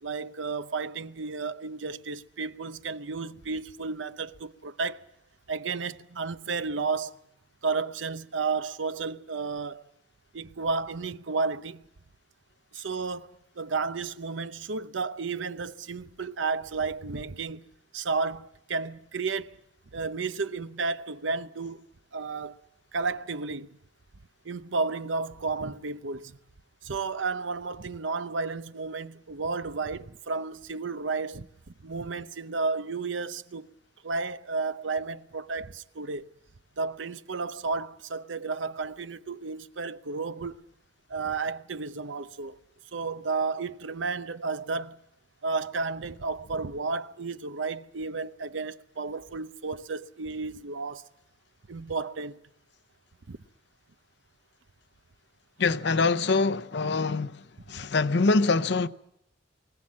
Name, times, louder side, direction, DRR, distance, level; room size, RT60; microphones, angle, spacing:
voice 1, 0.0-5.1 5.5-7.2 7.6-9.9 10.3-11.8 12.7-13.3 13.6-17.7 17.9-19.6 19.9-21.8 22.1-22.6 22.9-23.8 24.4-26.4 26.8-31.5 31.8-33.7 34.0-36.3 36.8-40.6 41.1-42.6 42.9-45.0 45.4-51.1 51.7-52.4 53.3-53.4, right 4 dB, 90° right, 0.8 m, -32 dB
voice 2, 55.6-57.3 57.7-58.9, left 3 dB, 65° left, 0.7 m, -24 dB
23.5 x 17.0 x 7.5 m
head